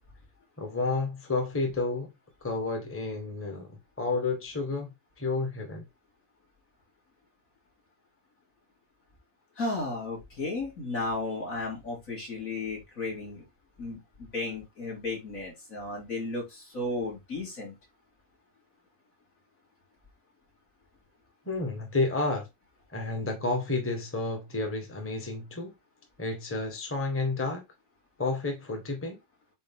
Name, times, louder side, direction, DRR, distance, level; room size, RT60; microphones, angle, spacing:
voice 1, 0.6-2.1 2.4-5.8 21.4-22.5 22.9-25.7 26.2-27.6 28.2-29.2, left 3 dB, 10° left, 1.3 m, -31 dB
voice 2, 9.6-13.5 13.8-17.8, left 2 dB, 60° left, 3.6 m, -34 dB
8.2 x 3.2 x 3.7 m
omnidirectional pair, 1.6 m